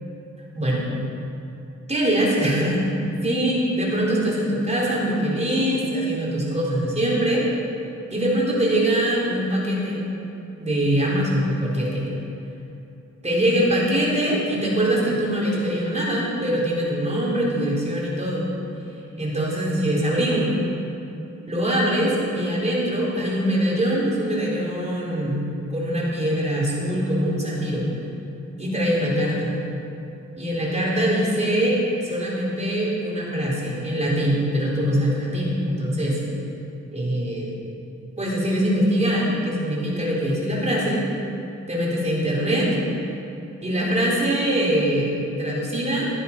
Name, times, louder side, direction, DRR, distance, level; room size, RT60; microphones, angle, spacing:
voice 1, 0.5-0.9 1.9-2.8 3.2-7.4 8.1-10.0 10.6-12.1 13.2-18.5 19.2-20.6 21.5-25.4 25.7-27.9 28.6-29.6 30.4-31.8 32.0-36.2 36.9-37.5 38.2-41.0 41.7-42.8 43.6-46.1, right 1 dB, 20° right, -5 dB, 4.1 m, -23 dB
16.0 x 10.5 x 5.6 m, 2.8 s
wide cardioid pair, 105°, 31 cm